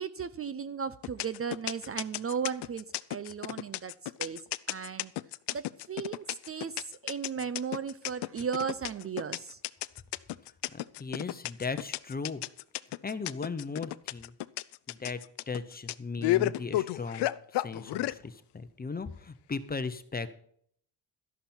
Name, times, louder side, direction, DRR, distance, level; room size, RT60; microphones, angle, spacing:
voice 1, 0.0-2.8 3.1-3.9 4.2-4.4 4.7-5.1 5.5-6.7 7.0-9.6, right 6 dB, 35° right, 14 dB, 0.5 m, -35 dB
sound 1, 1.0-18.2, left 16 dB, 75° left, 0.6 m, -32 dB
voice 2, 10.7-12.4 13.0-14.3 14.9-20.4, left 4 dB, 20° left, 11 dB, 0.8 m, -37 dB
12.5 x 11.0 x 4.4 m, 0.63 s
cardioid pair, 115°, 41 cm